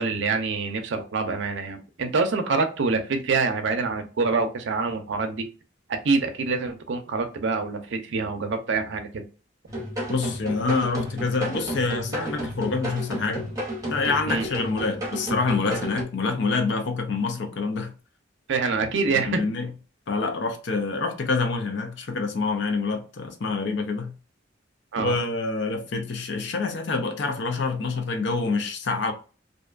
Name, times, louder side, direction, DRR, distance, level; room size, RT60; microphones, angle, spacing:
voice 1, 0.0-5.4 6.0-9.2 14.3-14.5 18.5-19.4 24.9-25.2, right 4 dB, 65° right, 0.5 m, -26 dB
sound 1, 9.7-16.0, equal, 20° right, 0.9 m, -32 dB
voice 2, 10.1-13.5 13.9-17.9 19.1-19.7 20.1-24.1 25.0-29.1, left 4 dB, 65° left, 0.6 m, -26 dB
2.6 x 2.2 x 2.4 m
head